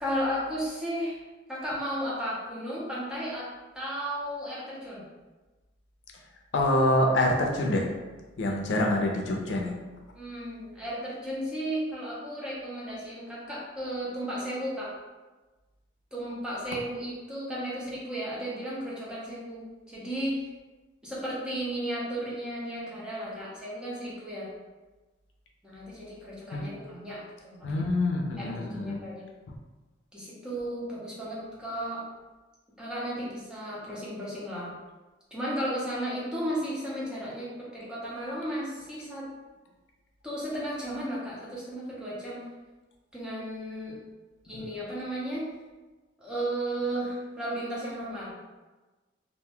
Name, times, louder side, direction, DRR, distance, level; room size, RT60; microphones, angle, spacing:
voice 1, 0.0-1.2 1.5-3.5 3.7-5.0 10.1-14.9 16.1-20.4 21.0-24.5 25.6-27.8 28.4-29.3 30.1-32.0 32.8-34.7 35.3-39.3 40.2-42.4 43.1-44.0 44.4-45.5 46.2-48.4, right 1 dB, 5° right, -7 dB, 0.7 m, -34 dB
voice 2, 6.5-7.8 8.4-9.7 26.5-26.6 27.6-29.0, left 1 dB, 80° left, 1 dB, 0.5 m, -26 dB
2.5 x 2.2 x 3.4 m, 1.2 s
head